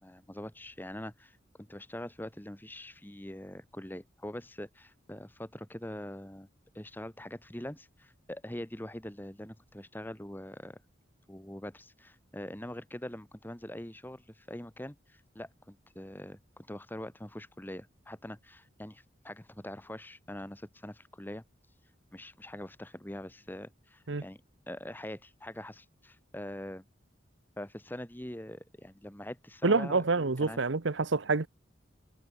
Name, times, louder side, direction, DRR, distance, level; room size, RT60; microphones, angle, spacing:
voice 1, 0.0-6.5 6.7-10.8 11.3-21.4 22.1-24.4 24.7-26.8 27.6-30.0 30.4-30.6, left 1 dB, 10° left, 1.5 m, -43 dB
voice 2, 29.6-31.5, right 3 dB, 75° right, 1.0 m, -27 dB
head